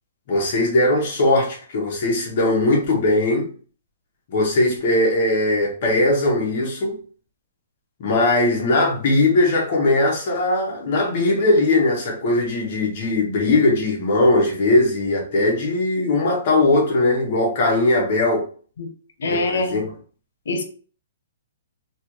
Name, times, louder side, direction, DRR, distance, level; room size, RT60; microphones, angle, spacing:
voice 1, 0.3-3.5 4.3-7.0 8.0-18.4 19.2-19.9, left 2 dB, 35° left, 0.9 m, -19 dB
voice 2, 19.2-19.8 20.5-20.6, left 2 dB, 80° left, 0.7 m, -24 dB
3.2 x 2.3 x 2.9 m
hypercardioid pair, 180°, 0 cm